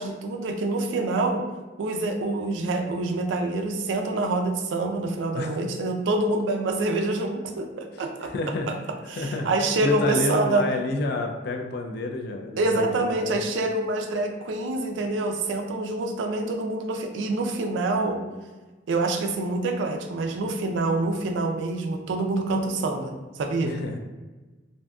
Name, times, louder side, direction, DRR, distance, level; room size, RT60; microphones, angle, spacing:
voice 1, 0.0-1.4 1.8-8.3 9.1-10.6 12.6-18.2 18.9-23.7, right 2 dB, 80° right, 4 dB, 0.4 m, -26 dB
voice 2, 7.9-8.7 9.1-9.5 9.8-12.9 13.2-13.4 23.6-24.0, left 2 dB, 60° left, 3 dB, 0.3 m, -29 dB
2.6 x 2.3 x 2.3 m, 1.2 s
head